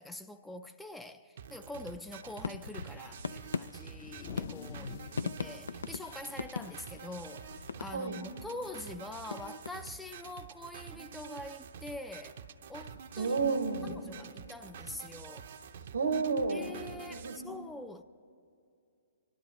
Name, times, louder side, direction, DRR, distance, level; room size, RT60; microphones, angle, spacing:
voice 1, 0.0-4.9 5.2-12.4 12.7-13.4 13.8-15.5 16.5-18.0, left 2 dB, 5° left, 0.4 m, -45 dB
sound 1, 1.4-17.4, right 7 dB, 60° right, 0.7 m, -48 dB
sound 2, 2.3-8.4 8.8-10.1, left 5 dB, 80° left, 0.3 m, -41 dB
sound 3, 3.8-7.6 7.9-8.0 8.4-8.9 10.0-10.1 11.1-11.2, left 6 dB, 45° left, 0.7 m, -48 dB
voice 2, 13.2-13.9 15.9-16.7 17.1-17.5, right 4 dB, 85° right, 1.5 m, -31 dB
27.5 x 12.0 x 3.1 m
hypercardioid pair, 130°, 0 cm